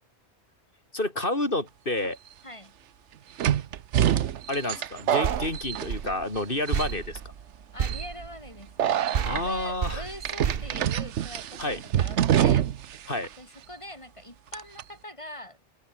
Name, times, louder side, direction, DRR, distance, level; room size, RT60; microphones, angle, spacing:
voice 1, 0.9-2.2 4.5-7.2 9.2-10.1 11.6-11.8 13.1-13.3, left 1 dB, 50° left, 5.2 m, -29 dB
sound 1, 2.0-2.1 3.4-6.4 6.7-7.2 7.8-8.1 8.8-9.4 10.2-13.0 13.2-13.3 14.5-14.8, right 10 dB, 80° right, 1.1 m, -26 dB
sound 2, 5.2-8.9 9.1-11.6, right 7 dB, 55° right, 1.2 m, -33 dB
voice 2, 7.7-12.7 13.4-15.6, left 1 dB, 25° left, 4.6 m, -43 dB
omnidirectional pair, 1.2 m